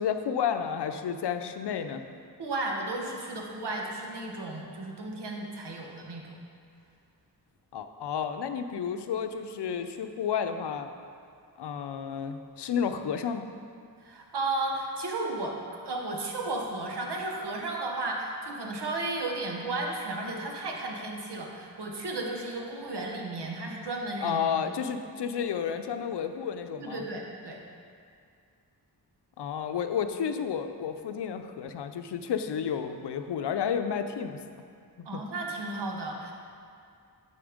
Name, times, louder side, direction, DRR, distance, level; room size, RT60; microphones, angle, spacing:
voice 1, 0.0-2.0 7.7-10.9 11.6-13.5 24.2-27.0 29.4-34.4 35.0-35.2, left 7 dB, 85° left, 8 dB, 0.6 m, -31 dB
voice 2, 2.4-6.4 14.0-24.4 26.8-27.6 35.0-36.3, right 2 dB, 85° right, 0 dB, 1.2 m, -34 dB
11.5 x 4.3 x 5.0 m, 2.3 s
cardioid pair, 65°, 40 cm